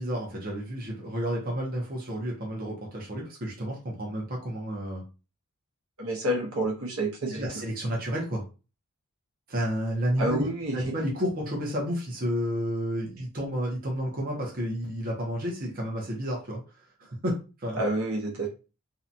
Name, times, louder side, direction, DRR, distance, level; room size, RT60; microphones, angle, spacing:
voice 1, 0.0-5.0 7.3-8.4 9.5-16.6 17.0-17.8, equal, 40° right, -2 dB, 0.7 m, -31 dB
voice 2, 6.0-7.4 10.2-10.9 17.8-18.5, right 1 dB, 70° right, 0 dB, 0.9 m, -28 dB
2.7 x 2.3 x 2.6 m, 0.32 s
head